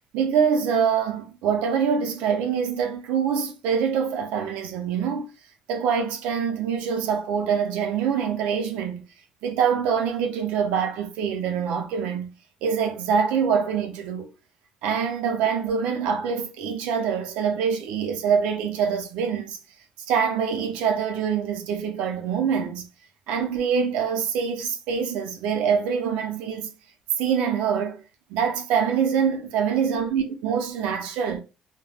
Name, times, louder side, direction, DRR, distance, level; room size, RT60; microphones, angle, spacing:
voice 1, 0.1-5.3 5.7-9.0 9.4-12.3 12.6-14.3 14.8-19.6 20.1-22.8 23.3-26.7 27.2-28.0 28.3-31.4, right 7 dB, 90° right, 0.5 m, -25 dB
3.3 x 2.2 x 2.4 m
cardioid pair, 135°, 2 cm